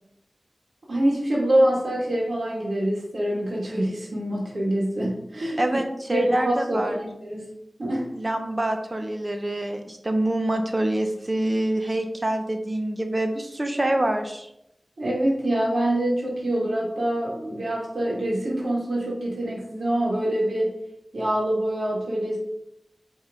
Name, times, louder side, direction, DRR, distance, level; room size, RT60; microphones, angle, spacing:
voice 1, 0.9-5.6 6.1-7.5 7.8-8.2 15.0-20.8 21.1-22.4, right 1 dB, 70° right, -5 dB, 2.4 m, -25 dB
voice 2, 5.6-7.0 8.1-14.5, right 1 dB, 35° right, 5 dB, 0.8 m, -26 dB
8.8 x 4.0 x 3.8 m, 0.79 s
wide cardioid pair, 80°, 0 cm